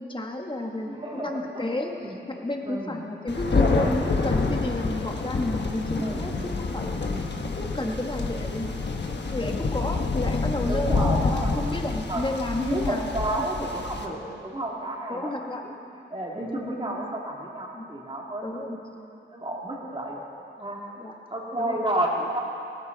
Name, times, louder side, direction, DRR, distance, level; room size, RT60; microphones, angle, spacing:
voice 1, 0.0-1.9 2.3-6.3 6.7-7.0 7.6-8.8 9.3-13.0 13.4-13.5 15.1-15.6 17.7-17.9 18.4-18.8 21.0-21.1 21.6-21.9, left 1 dB, 25° left, 2 dB, 1.5 m, -31 dB
voice 2, 0.8-2.2 2.6-3.0 3.6-4.0 6.0-6.3 7.1-7.5 10.7-11.7 12.0-12.3 12.6-15.3 15.6-15.7 16.1-19.1 19.3-20.2 20.6-20.8 21.3-22.4, right 1 dB, 25° right, -3 dB, 2.7 m, -31 dB
Thunder, 3.3-14.1, left 3 dB, 60° left, 1.2 m, -27 dB
17.5 x 14.5 x 4.1 m, 2.8 s
wide cardioid pair, 80°, 20 cm